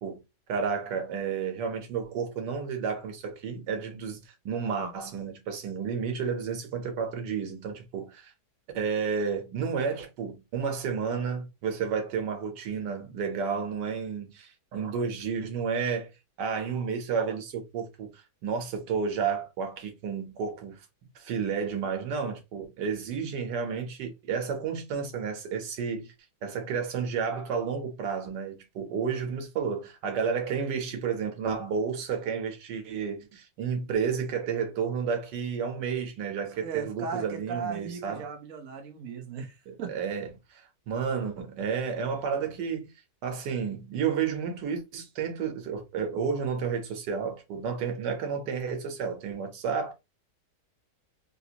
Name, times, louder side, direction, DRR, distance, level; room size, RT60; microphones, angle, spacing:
voice 1, 0.5-4.2 4.4-8.3 8.7-16.1 16.4-18.1 18.4-20.8 21.1-26.1 26.4-38.3 39.7-42.9 43.2-49.9, right 6 dB, 85° right, 1.5 m, -31 dB
voice 2, 36.6-39.9, right 5 dB, 60° right, 1.0 m, -37 dB
3.7 x 2.5 x 2.8 m
omnidirectional pair, 1.8 m